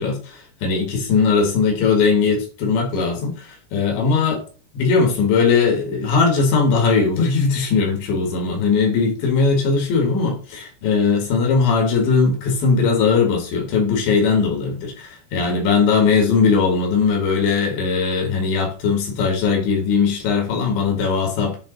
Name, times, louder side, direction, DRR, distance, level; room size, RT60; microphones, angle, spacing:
voice 1, 0.0-4.4 4.7-21.6, left 5 dB, 75° left, 2 dB, 4.3 m, -19 dB
10.5 x 3.5 x 4.1 m, 0.37 s
omnidirectional pair, 5.2 m